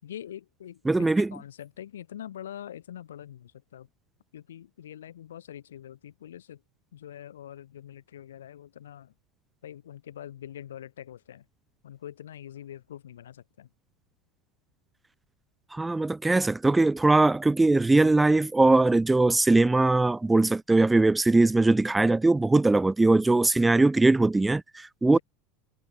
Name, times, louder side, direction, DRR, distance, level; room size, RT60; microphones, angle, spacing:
voice 1, 0.0-3.9 4.3-6.6 6.9-9.1 9.6-11.4 11.8-13.7 25.0-25.2, left 10 dB, 90° left, 6.7 m, -44 dB
voice 2, 0.9-1.3 15.7-25.2, right 2 dB, 10° right, 0.7 m, -21 dB
hypercardioid pair, 100°, 0 cm